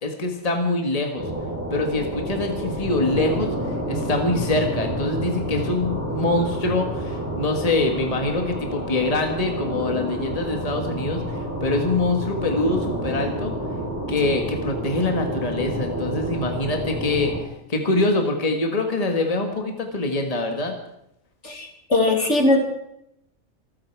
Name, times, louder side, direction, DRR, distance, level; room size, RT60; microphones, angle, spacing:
voice 1, 0.0-1.3 1.7-13.5 14.1-17.3 17.7-20.7, left 2 dB, 25° left, 3 dB, 1.7 m, -24 dB
sound 1, 1.2-17.4, right 1 dB, 10° right, 3.8 m, -29 dB
voice 2, 21.4-22.6, left 2 dB, 55° left, 3 dB, 2.3 m, -20 dB
26.0 x 9.6 x 4.7 m, 0.79 s
omnidirectional pair, 1.5 m